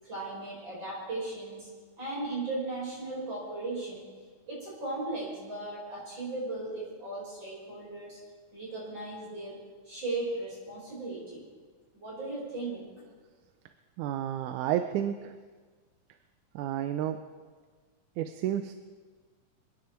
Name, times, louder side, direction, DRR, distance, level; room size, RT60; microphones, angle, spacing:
voice 1, 0.0-1.7 2.0-4.0 4.5-8.2 8.5-11.4 11.9-12.8, right 2 dB, 35° right, -6 dB, 6.5 m, -37 dB
voice 2, 14.0-15.3 16.6-17.2 18.2-18.8, right 11 dB, 85° right, 9 dB, 2.1 m, -31 dB
28.0 x 9.7 x 4.5 m, 1.5 s
omnidirectional pair, 3.4 m